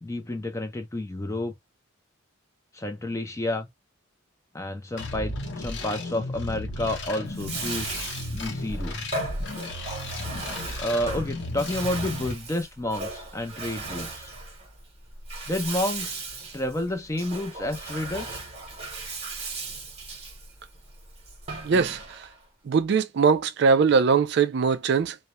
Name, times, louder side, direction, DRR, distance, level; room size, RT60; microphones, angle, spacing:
voice 1, 0.0-1.5 2.7-3.7 4.5-7.9 8.3-9.1 10.8-14.3 15.5-16.2 16.5-18.4, left 1 dB, 15° left, 0.4 m, -30 dB
sound 1, 5.0-12.3, left 2 dB, 60° left, 0.7 m, -34 dB
Bathtub (filling or washing), 7.2-22.4, right 3 dB, 30° right, 0.8 m, -37 dB
voice 2, 21.6-22.0 22.7-25.2, right 5 dB, 55° right, 0.3 m, -21 dB
2.3 x 2.0 x 2.8 m
head